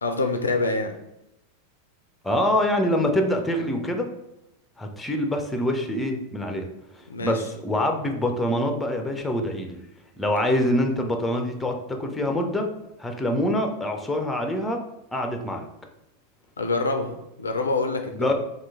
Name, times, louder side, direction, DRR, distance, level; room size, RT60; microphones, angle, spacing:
voice 1, 0.0-0.9 7.1-7.4 16.6-18.3, left 3 dB, 75° left, 5 dB, 0.3 m, -26 dB
voice 2, 2.2-4.1 4.8-6.7 6.9-9.8 10.2-12.7 13.0-14.8 15.1-15.7 18.2-18.3, left 1 dB, 10° left, 4 dB, 0.4 m, -25 dB
2.9 x 2.3 x 3.4 m, 0.87 s
figure-of-eight pair, 90°, 0 cm